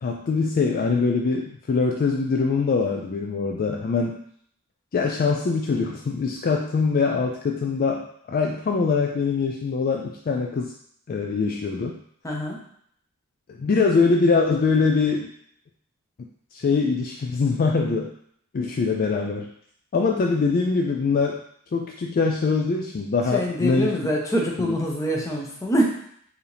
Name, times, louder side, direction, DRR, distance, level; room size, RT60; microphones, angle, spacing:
voice 1, 0.0-4.2 4.9-10.7 11.1-12.0 13.5-15.3 16.5-18.1 18.5-19.5 19.9-21.4 21.7-23.9 24.6-24.7, left 4 dB, 40° left, 2 dB, 0.3 m, -23 dB
voice 2, 12.2-12.6 23.3-25.8, equal, 15° left, -1 dB, 0.7 m, -25 dB
4.7 x 2.7 x 3.3 m, 0.66 s
head